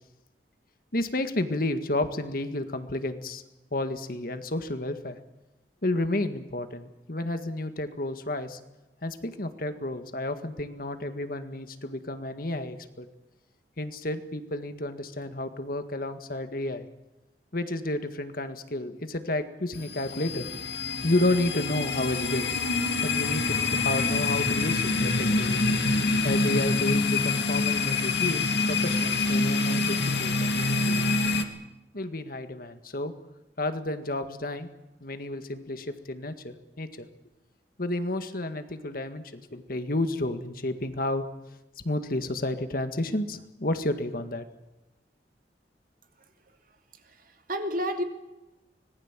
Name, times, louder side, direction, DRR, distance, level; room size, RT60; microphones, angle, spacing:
voice 1, 0.9-3.4 3.7-5.2 5.8-8.6 9.0-13.1 13.8-16.9 17.5-20.5 21.0-22.5 23.0-25.6 26.2-31.1 31.9-33.1 33.6-34.7 35.0-37.1 37.8-41.3 41.8-44.5, left 1 dB, 55° left, 8 dB, 1.8 m, -31 dB
sound 1, 19.7-31.4, left 3 dB, 70° left, 2.2 m, -26 dB
voice 2, 47.0-48.0, equal, 50° right, 5 dB, 2.7 m, -31 dB
25.0 x 19.5 x 7.5 m, 1.0 s
head